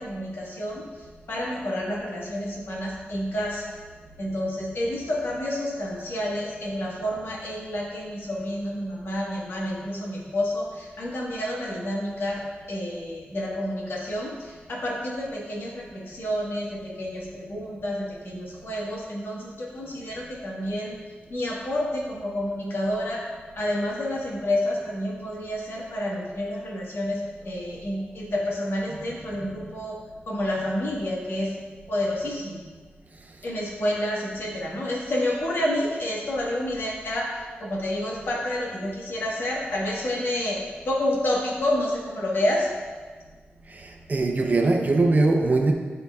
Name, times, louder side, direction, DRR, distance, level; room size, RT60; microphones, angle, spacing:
voice 1, 0.0-3.7 4.2-12.4 12.7-20.9 21.3-23.2 23.6-30.0 30.3-31.5 31.9-32.6 33.4-42.7, left 1 dB, 70° left, -4 dB, 1.6 m, -29 dB
voice 2, 43.7-45.7, right 3 dB, 45° right, 2 dB, 0.7 m, -21 dB
11.5 x 3.9 x 2.4 m, 1.5 s
wide cardioid pair, 100°, 4 cm